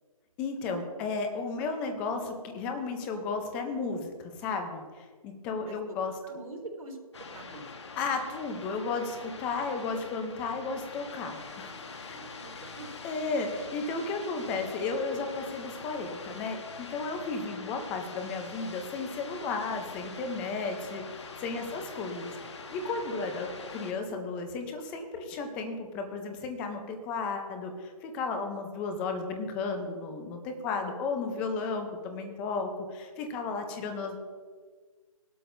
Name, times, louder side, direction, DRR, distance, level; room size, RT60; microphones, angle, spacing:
voice 1, 0.4-6.1 8.0-12.2 13.0-34.2, left 4 dB, 5° left, 5 dB, 0.6 m, -34 dB
voice 2, 6.2-7.0 7.3-7.7 12.1-12.9 17.2-17.3 21.7-21.9 23.1-23.3, right 2 dB, 70° right, -1 dB, 3.4 m, -45 dB
sound 1, 7.1-23.9, left 4 dB, 50° left, 1.4 m, -44 dB
18.0 x 12.5 x 2.6 m, 1.5 s
figure-of-eight pair, 165°, 18 cm